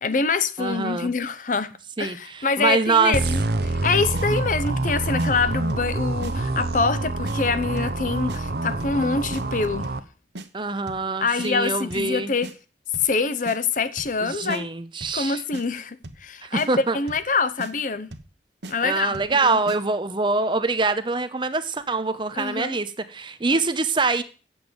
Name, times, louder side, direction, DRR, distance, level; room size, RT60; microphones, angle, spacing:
voice 1, 0.0-1.7 2.0-9.9 11.2-12.5 13.0-14.7 15.1-18.1 18.7-19.6 22.3-22.8 23.5-23.6, left 4 dB, 45° left, 0.7 m, -25 dB
voice 2, 0.6-1.1 2.0-3.1 10.5-12.3 14.2-15.4 16.4-17.0 18.8-24.2, right 3 dB, 25° right, 0.8 m, -24 dB
sound 1, 3.1-10.0, right 2 dB, 60° right, 0.9 m, -26 dB
sound 2, 3.6-3.9 4.1-4.3 4.7-4.9 5.2-5.3 5.7-5.9 6.2-6.3 6.7-7.0 7.2-7.4 7.8-8.0 8.3-8.4 8.8-9.0 9.3-9.4 9.8-10.1 10.4-10.5 10.9-11.1 11.4-11.5 11.9-12.1 12.4-12.5 12.9-13.2 13.5-13.6 14.0-14.2 14.5-14.6 15.0-15.2 15.5-15.7 16.0-16.3 16.6-16.7 17.1-17.3 17.6-17.7 18.1-18.3 18.6-18.8 19.1-19.4 19.7-19.8, right 1 dB, 80° right, 1.2 m, -38 dB
8.7 x 7.2 x 7.9 m
head